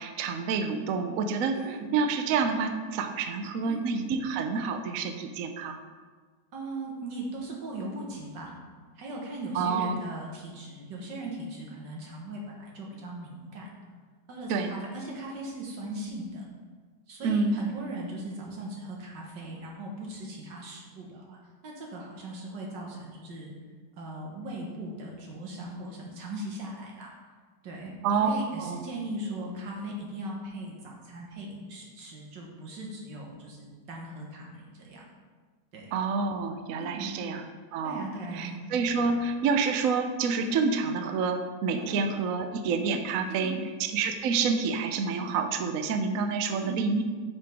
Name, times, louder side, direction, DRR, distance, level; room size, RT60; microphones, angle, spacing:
voice 1, 0.0-5.8 9.5-10.0 14.5-14.7 17.2-17.5 28.0-28.3 28.6-28.8 35.9-37.4 37.7-38.1 38.3-43.5 43.9-47.0, right 5 dB, 65° right, 7 dB, 0.9 m, -28 dB
voice 2, 1.5-1.9 3.6-3.9 6.5-8.5 9.0-13.8 14.3-16.5 17.1-23.5 24.0-27.1 27.6-27.9 28.2-35.1 35.7-35.9 36.8-37.1 37.8-38.6 40.4-40.6 41.8-42.0 43.3-43.6 46.5-46.8, right 1 dB, 85° right, -2 dB, 2.0 m, -39 dB
9.2 x 5.5 x 3.5 m, 1.5 s
omnidirectional pair, 1.9 m